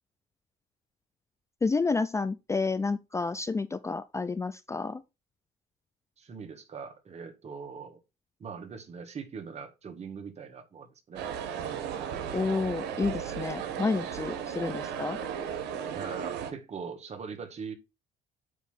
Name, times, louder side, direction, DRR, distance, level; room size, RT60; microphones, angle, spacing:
voice 1, 1.6-5.0 12.3-15.2, left 4 dB, 15° left, 0.4 m, -30 dB
voice 2, 6.2-8.0 8.4-11.3 15.9-17.7, right 5 dB, 40° right, 1.6 m, -41 dB
sound 1, 11.2-16.5, right 8 dB, 85° right, 1.2 m, -35 dB
8.3 x 3.1 x 5.5 m
cardioid pair, 110°, 17 cm